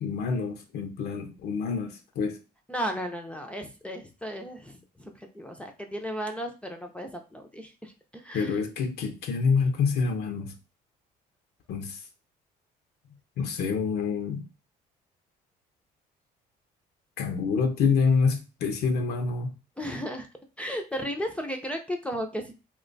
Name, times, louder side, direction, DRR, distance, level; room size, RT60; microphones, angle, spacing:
voice 1, 0.0-2.4 8.3-10.5 11.7-12.0 13.4-14.5 17.2-19.6, left 5 dB, 70° left, 0.6 m, -27 dB
voice 2, 2.7-8.6 19.8-20.3 20.6-22.6, equal, 5° left, 0.4 m, -35 dB
3.0 x 2.2 x 3.8 m
cardioid pair, 110°, 17 cm